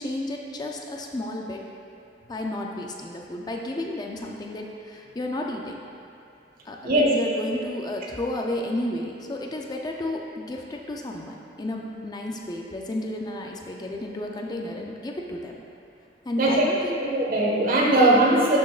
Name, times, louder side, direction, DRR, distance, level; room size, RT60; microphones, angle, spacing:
voice 1, 0.0-1.7 2.3-5.8 6.7-15.5 16.2-17.0, left 1 dB, 25° left, 0 dB, 0.5 m, -32 dB
voice 2, 17.1-18.6, right 1 dB, 55° right, -4 dB, 1.5 m, -19 dB
12.0 x 6.1 x 2.4 m, 2.5 s
head